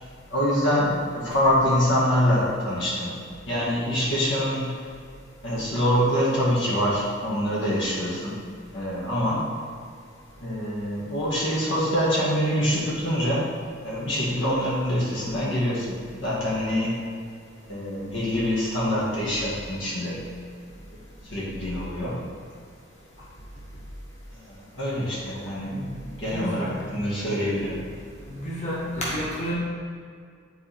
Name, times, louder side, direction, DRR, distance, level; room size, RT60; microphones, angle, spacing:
voice 1, 0.3-3.2 3.5-4.8 5.4-8.4 8.7-9.5 10.4-13.5 13.8-17.0 17.6-20.3 21.3-22.2 24.3-27.8, equal, 70° left, -6 dB, 1.9 m, -25 dB
voice 2, 26.2-26.8 28.3-29.5, equal, 35° left, -8 dB, 1.8 m, -31 dB
10.0 x 4.4 x 3.5 m, 2.2 s
head